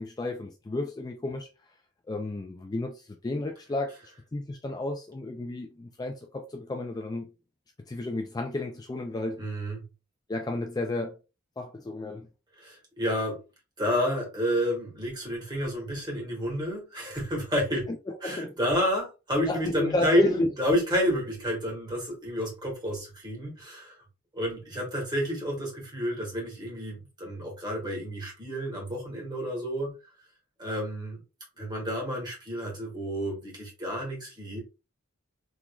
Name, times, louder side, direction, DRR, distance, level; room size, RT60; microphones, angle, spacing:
voice 1, 0.0-1.5 2.1-7.3 7.9-9.4 10.3-11.1 11.6-12.3 17.9-18.6 19.5-20.5, left 2 dB, 20° left, 0.3 m, -32 dB
voice 2, 9.4-9.8 12.6-13.4 13.8-17.9 18.2-24.0 24.3-29.9 30.6-31.2 31.6-34.6, equal, 20° right, 1.6 m, -30 dB
3.7 x 3.0 x 2.3 m
head